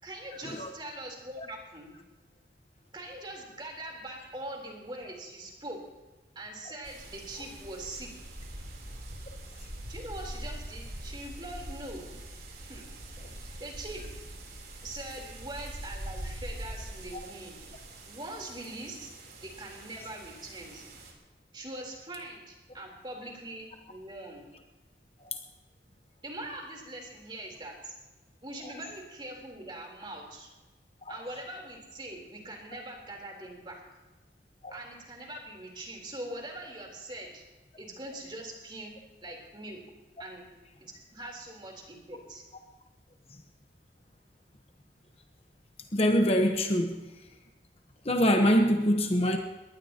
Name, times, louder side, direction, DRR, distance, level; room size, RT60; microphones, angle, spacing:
voice 1, 0.0-2.0 2.9-5.8 6.4-8.1 9.9-12.1 12.7-12.9 13.4-14.0 14.8-17.6 18.0-19.1 19.4-20.8 21.5-24.5 26.2-27.9 28.4-30.5 31.1-33.8 34.7-37.4 37.8-39.8 40.2-40.5 40.8-42.4, right 1 dB, 25° right, 3.7 m, -42 dB
sound 1, 6.8-21.1, right 1 dB, 55° right, 3.6 m, -43 dB
voice 2, 45.9-47.0 48.0-49.4, equal, 35° left, 1.1 m, -24 dB
22.0 x 19.0 x 2.9 m
head